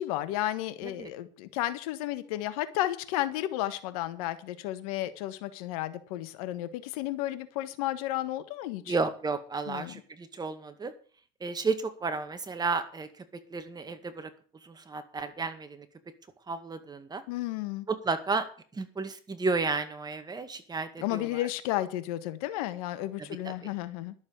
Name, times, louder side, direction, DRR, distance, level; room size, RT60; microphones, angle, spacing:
voice 1, 0.0-8.9 9.7-9.9 17.3-17.8 21.0-24.1, left 14 dB, 85° left, 12 dB, 1.4 m, -33 dB
voice 2, 8.9-10.9 11.4-14.3 14.6-15.9 16.5-17.2 17.9-18.5 18.7-21.4 23.2-23.7, right 4 dB, 20° right, 9 dB, 1.9 m, -33 dB
12.0 x 7.2 x 8.1 m, 0.42 s
supercardioid pair, 105°, 18 cm